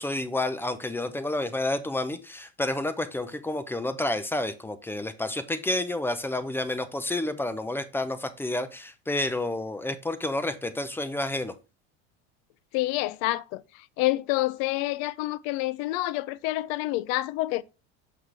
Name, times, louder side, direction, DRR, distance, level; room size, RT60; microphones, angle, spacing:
voice 1, 0.0-11.5, left 2 dB, 5° left, 0.6 m, -30 dB
voice 2, 12.7-13.6 14.0-17.6, left 18 dB, 60° left, 0.5 m, -28 dB
6.5 x 5.6 x 3.3 m
supercardioid pair, 120°, 32 cm